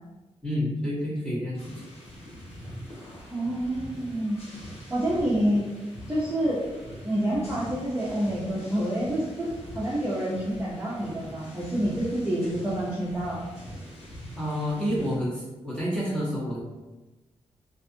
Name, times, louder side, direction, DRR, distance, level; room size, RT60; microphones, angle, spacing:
voice 1, 0.4-1.7 14.3-16.6, equal, 10° left, -8 dB, 1.1 m, -29 dB
sound 1, 1.6-15.2, equal, 70° left, 1.1 m, -43 dB
voice 2, 3.3-4.4 4.9-5.6 6.1-6.6 7.0-9.5 9.7-13.4, right 1 dB, 10° right, -9 dB, 0.6 m, -27 dB
2.5 x 2.4 x 2.6 m, 1.1 s
wide cardioid pair, 115°, 11 cm